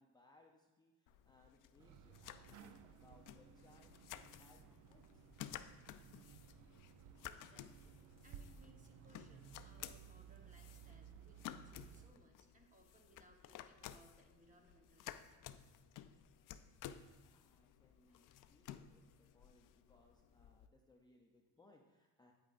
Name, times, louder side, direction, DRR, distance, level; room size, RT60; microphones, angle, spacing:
voice 1, 0.0-5.2 17.1-22.3, left 2 dB, 10° left, 0 dB, 0.5 m, -69 dB
sound 1, 1.1-20.7, left 11 dB, 65° left, 0.5 m, -55 dB
sound 2, 1.8-12.1, right 8 dB, 60° right, 0.5 m, -59 dB
voice 2, 7.3-8.0 8.2-15.4 18.1-18.3, right 2 dB, 20° right, 2 dB, 1.1 m, -68 dB
8.8 x 8.7 x 2.5 m, 1.2 s
cardioid pair, 120°, 35 cm